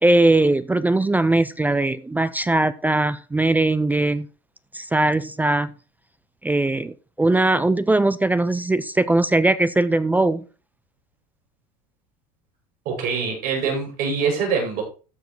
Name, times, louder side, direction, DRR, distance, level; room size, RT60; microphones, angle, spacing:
voice 1, 0.0-4.3 4.7-5.7 6.4-10.4, right 2 dB, 10° right, 0.4 m, -20 dB
voice 2, 12.8-14.8, right 5 dB, 55° right, 6.7 m, -24 dB
14.0 x 4.9 x 4.4 m
supercardioid pair, 115°, 20 cm